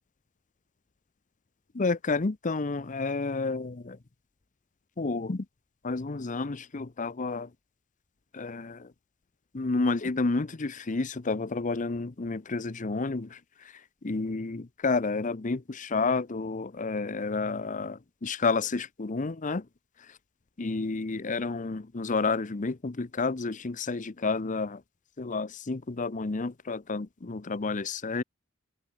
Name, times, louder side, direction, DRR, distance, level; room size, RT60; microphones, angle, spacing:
voice 1, 1.7-4.0 5.0-5.5 5.8-7.5 8.3-8.9 9.5-19.7 20.0-20.2 20.6-24.8 25.2-28.2, left 3 dB, 40° left, 0.7 m, -30 dB
open air
head